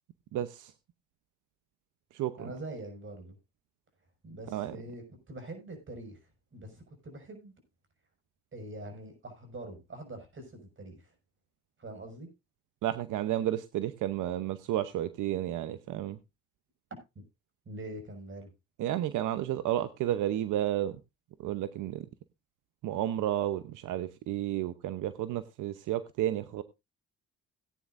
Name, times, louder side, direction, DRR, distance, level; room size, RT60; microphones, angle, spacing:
voice 1, 0.3-0.7 2.1-2.5 4.5-4.8 12.8-16.2 18.8-21.0 21.4-22.1 22.8-26.6, right 12 dB, 85° right, 12 dB, 0.8 m, -32 dB
voice 2, 2.4-3.4 4.2-6.2 6.5-7.5 8.5-11.1 11.8-12.3 17.1-17.2 17.7-18.5, right 1 dB, 40° right, 5 dB, 6.1 m, -44 dB
18.0 x 9.5 x 2.5 m, 0.24 s
cardioid pair, 90°, 30 cm